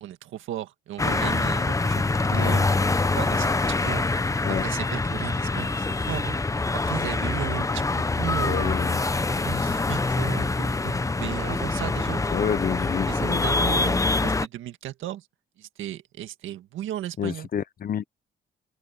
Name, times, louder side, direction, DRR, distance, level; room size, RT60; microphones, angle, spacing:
voice 1, 0.0-2.7 3.2-4.1 4.5-6.4 6.7-8.8 9.4-12.2 13.1-15.3 15.6-17.5, right 13 dB, 85° right, 1.8 m, -35 dB
sound 1, 1.0-14.5, left 3 dB, 15° left, 0.8 m, -25 dB
voice 2, 8.4-9.0 12.3-13.7 17.2-18.0, left 8 dB, 50° left, 0.9 m, -29 dB
open air
cardioid pair, 90°, 20 cm